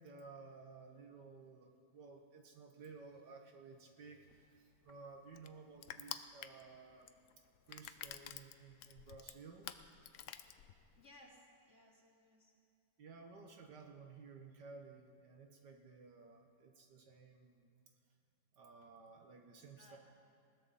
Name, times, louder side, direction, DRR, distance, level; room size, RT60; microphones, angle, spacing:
voice 1, 0.0-7.1 7.7-9.7 13.0-17.7 18.5-20.0, right 4 dB, 65° right, 3 dB, 1.7 m, -56 dB
Crushing, 4.3-11.1, left 10 dB, 85° left, 0.6 m, -51 dB
voice 2, 11.0-12.5 19.8-20.0, left 1 dB, 35° left, -3 dB, 2.7 m, -62 dB
20.0 x 16.5 x 4.1 m, 2.5 s
omnidirectional pair, 2.0 m